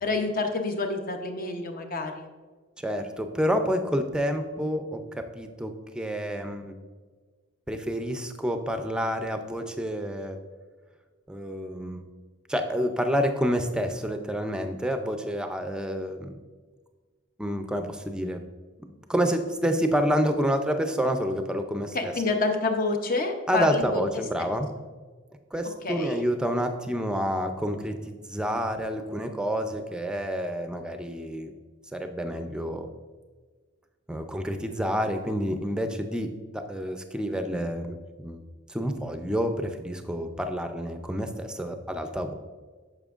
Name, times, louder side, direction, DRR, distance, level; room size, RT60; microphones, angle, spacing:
voice 1, 0.0-2.3 21.9-24.1 25.8-26.2, left 3 dB, 45° left, 5 dB, 0.7 m, -28 dB
voice 2, 2.8-6.8 7.7-10.4 11.3-12.1 12.5-16.4 17.4-18.4 19.1-22.1 23.5-24.7 25.5-31.5 31.9-32.9 34.1-38.4 38.7-42.3, equal, 5° right, 6 dB, 0.5 m, -28 dB
8.8 x 6.8 x 2.5 m, 1.4 s
head